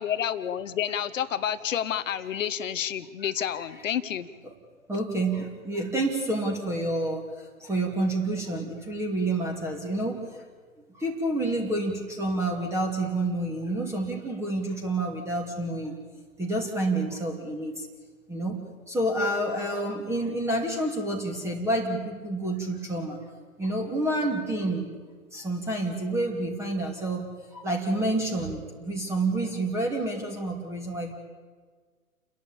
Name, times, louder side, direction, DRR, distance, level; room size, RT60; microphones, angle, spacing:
voice 1, 0.0-4.3, left 9 dB, 65° left, 13 dB, 1.4 m, -29 dB
voice 2, 3.2-3.9 4.9-10.4 11.0-16.0 16.4-17.9 18.3-18.6 18.9-23.2 23.6-24.9 25.3-31.1, right 2 dB, 5° right, 1 dB, 2.8 m, -29 dB
29.5 x 11.5 x 8.8 m, 1.5 s
hypercardioid pair, 125°, 42 cm